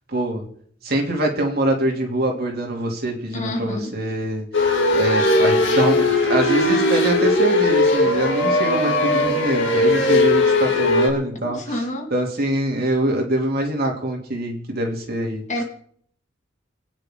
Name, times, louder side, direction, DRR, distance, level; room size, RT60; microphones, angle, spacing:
voice 1, 0.1-0.4 0.8-4.5 4.9-11.8 12.1-15.6, right 1 dB, 55° right, 3.1 m, -24 dB
voice 2, 3.3-3.9 11.4-12.1 15.5-15.6, left 1 dB, 40° left, 2.5 m, -28 dB
sound 1, 4.5-11.1, left 2 dB, 75° left, 2.9 m, -18 dB
sound 2, 8.0-11.0, left 1 dB, 10° left, 2.7 m, -35 dB
28.5 x 9.8 x 3.9 m
head